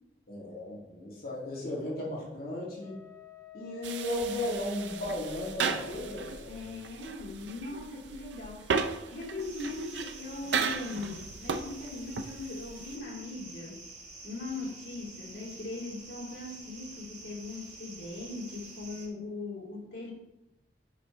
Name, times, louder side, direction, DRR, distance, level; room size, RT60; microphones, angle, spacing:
voice 1, 0.3-2.9 3.5-6.7, left 1 dB, 60° left, -5 dB, 2.2 m, -35 dB
Wind instrument woodwind instrument, 2.8-6.5, left 8 dB, 25° left, 1.1 m, -48 dB
sound 1, 3.8-13.0, right 5 dB, 85° right, 0.5 m, -36 dB
voice 2, 6.5-13.9 14.2-20.1, left 2 dB, 80° left, -4 dB, 2.5 m, -40 dB
sound 2, 9.4-19.1, right 3 dB, 40° right, 1.5 m, -48 dB
8.9 x 5.4 x 3.2 m, 0.97 s
head